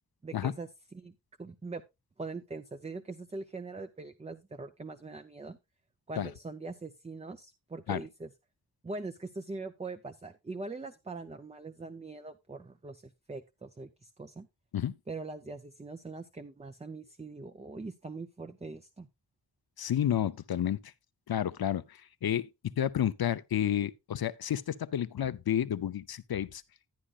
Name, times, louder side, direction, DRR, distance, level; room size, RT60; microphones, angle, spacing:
voice 1, 0.2-1.8 2.2-5.6 6.1-8.3 8.8-14.5 15.1-19.1, right 3 dB, 15° right, 0.5 m, -42 dB
voice 2, 19.8-20.8 21.3-21.8 22.2-22.5 22.8-26.6, left 10 dB, 65° left, 0.6 m, -30 dB
11.5 x 10.0 x 2.4 m
wide cardioid pair, 120°, 40 cm